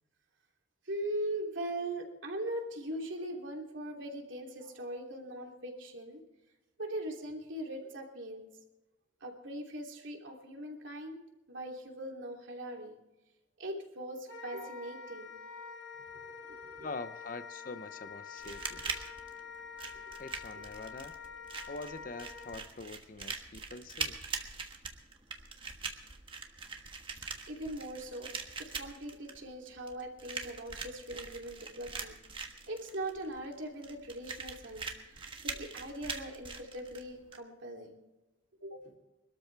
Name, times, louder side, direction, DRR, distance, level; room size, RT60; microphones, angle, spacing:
voice 1, 0.8-6.2 6.8-8.5 9.2-11.2 11.5-13.0 13.6-15.4 16.2-16.9 18.4-18.5 19.9-20.2 27.5-28.3 28.6-32.2 32.7-38.0 38.6-39.0, right 1 dB, 80° right, 1 dB, 2.9 m, -41 dB
Wind instrument woodwind instrument, 14.3-22.6, left 5 dB, 70° left, 2.1 m, -47 dB
voice 2, 16.8-19.1 20.2-21.1 21.7-24.2, left 3 dB, 45° left, 12 dB, 0.6 m, -44 dB
sound 1, 18.4-37.4, right 5 dB, 25° right, 1.3 m, -42 dB
23.5 x 13.0 x 3.4 m, 1.0 s
head